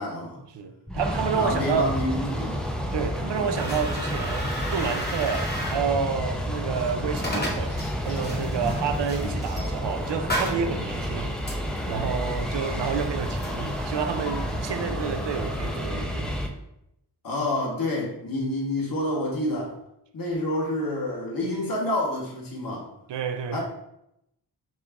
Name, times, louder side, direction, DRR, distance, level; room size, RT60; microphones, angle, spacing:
voice 1, 0.0-0.4 1.3-2.6 17.2-19.7 20.1-22.9 23.5-23.6, left 1 dB, 55° left, 1.1 m, -28 dB
voice 2, 0.5-2.0 2.9-11.4 11.6-16.4 23.1-23.6, right 6 dB, 80° right, 0.6 m, -29 dB
sound 1, 0.9-16.5, equal, ahead, 0.4 m, -30 dB
sound 2, 3.5-15.9, equal, 25° left, 1.1 m, -36 dB
5.0 x 2.4 x 3.4 m
wide cardioid pair, 105°, 42 cm